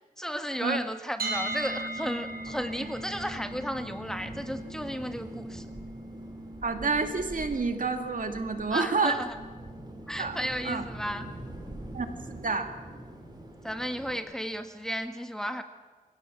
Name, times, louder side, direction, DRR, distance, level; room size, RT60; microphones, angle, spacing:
voice 1, 0.2-5.7 8.7-9.4 10.1-11.3 13.6-15.6, equal, 5° left, 7 dB, 1.7 m, -34 dB
sound 1, 1.2-13.1, right 1 dB, 80° right, 5.6 m, -41 dB
sound 2, 1.3-14.2, right 1 dB, 30° right, 4.9 m, -45 dB
voice 2, 6.6-9.2 10.2-10.4 10.6-10.8 11.9-12.7, right 4 dB, 65° right, 6 dB, 2.3 m, -29 dB
24.5 x 17.0 x 7.5 m, 1.4 s
wide cardioid pair, 70°, 15 cm